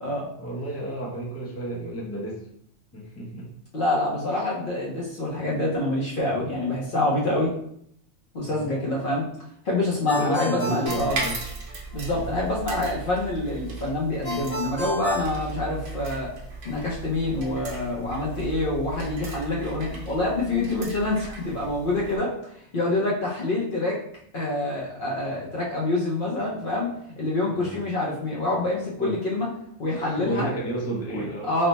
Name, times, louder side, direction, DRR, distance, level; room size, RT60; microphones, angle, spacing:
voice 1, 0.4-2.5 2.9-3.5 4.4-4.5 8.4-8.7 10.2-11.5 12.1-12.3 27.5-27.8 29.0-29.2 29.9-31.5, right 1 dB, 15° left, -4 dB, 0.5 m, -32 dB
voice 2, 3.7-7.5 8.3-9.3 9.6-11.2 11.9-16.3 16.6-22.3 22.7-24.0 24.3-29.5 29.8-30.5 31.1-31.7, left 2 dB, 50° left, -4 dB, 0.8 m, -26 dB
Ringtone, 10.1-12.0 14.2-16.2, left 2 dB, 85° left, 1.2 m, -33 dB
sound 1, 10.9-22.2, right 4 dB, 70° right, 1.1 m, -37 dB
3.3 x 2.1 x 3.9 m, 0.69 s
omnidirectional pair, 1.4 m